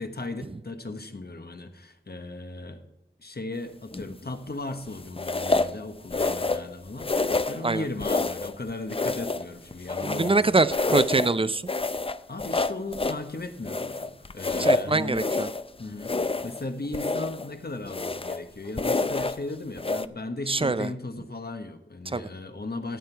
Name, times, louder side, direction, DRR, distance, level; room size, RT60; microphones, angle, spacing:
voice 1, 0.0-2.8 3.2-10.4 12.3-15.3 15.8-16.2 16.4-23.0, left 2 dB, 55° left, 7 dB, 1.3 m, -36 dB
sound 1, 3.9-4.3 5.2-5.8 6.1-6.7 7.0-7.6 8.0-8.6 8.9-10.4 10.7-11.3 11.7-13.2 13.6-15.7 16.0-16.6 16.9-17.5 17.9-18.4 18.8-19.4 19.8-20.1, left 3 dB, 30° left, 0.5 m, -27 dB
voice 2, 10.0-11.6 14.6-15.5 20.5-20.9 22.1-22.2, right 3 dB, 25° right, 15 dB, 0.5 m, -24 dB
14.0 x 9.0 x 4.6 m, 0.97 s
wide cardioid pair, 60°, 20 cm